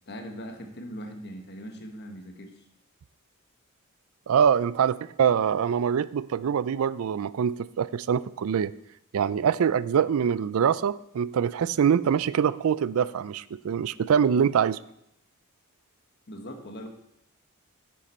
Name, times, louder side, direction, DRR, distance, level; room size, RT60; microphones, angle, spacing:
voice 1, 0.1-2.7 16.3-16.9, equal, 50° left, 5 dB, 1.3 m, -40 dB
voice 2, 4.3-8.7 9.1-14.8, right 7 dB, 65° right, 18 dB, 0.4 m, -24 dB
9.4 x 9.1 x 4.3 m, 0.77 s
head